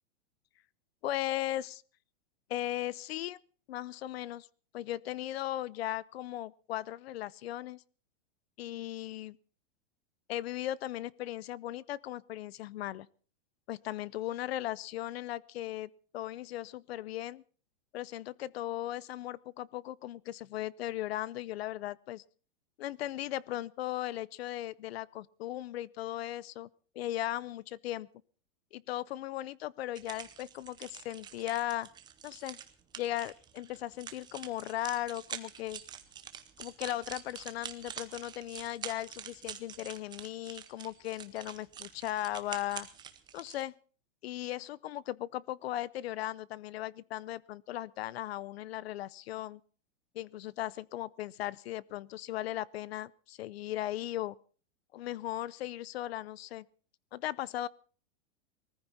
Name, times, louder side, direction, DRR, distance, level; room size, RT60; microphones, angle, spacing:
voice 1, 1.0-1.8 2.5-3.4 3.7-4.5 4.7-7.8 8.6-9.4 10.3-13.1 13.7-17.4 17.9-22.2 22.8-26.7 26.9-28.1 28.7-31.9 32.2-32.6 33.0-35.8 36.6-42.9 43.3-43.7 44.2-49.6 50.1-54.4 54.9-56.6 57.1-57.7, left 14 dB, 55° left, 0.7 m, -37 dB
sound 1, 30.0-43.6, right 9 dB, 10° right, 0.8 m, -46 dB
20.5 x 14.5 x 4.1 m
supercardioid pair, 165°, 36 cm